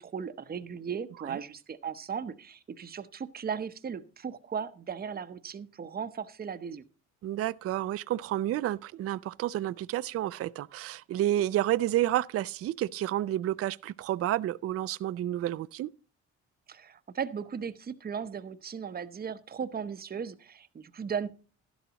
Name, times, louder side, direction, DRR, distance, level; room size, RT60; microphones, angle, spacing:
voice 1, 0.0-6.8 16.7-21.3, right 7 dB, 30° right, 0.8 m, -37 dB
voice 2, 7.2-15.9, right 13 dB, 50° right, 0.4 m, -30 dB
12.0 x 11.0 x 2.9 m
cardioid pair, 90°, 30 cm